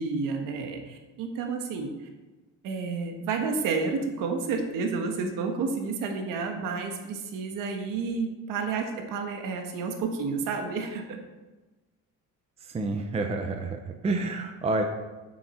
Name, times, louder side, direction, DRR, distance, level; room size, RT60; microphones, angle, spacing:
voice 1, 0.0-1.9 2.6-11.2, right 4 dB, 75° right, 4 dB, 1.5 m, -30 dB
voice 2, 12.6-14.8, right 2 dB, 20° right, 5 dB, 0.7 m, -29 dB
9.4 x 9.0 x 4.3 m, 1.2 s
cardioid pair, 165°, 32 cm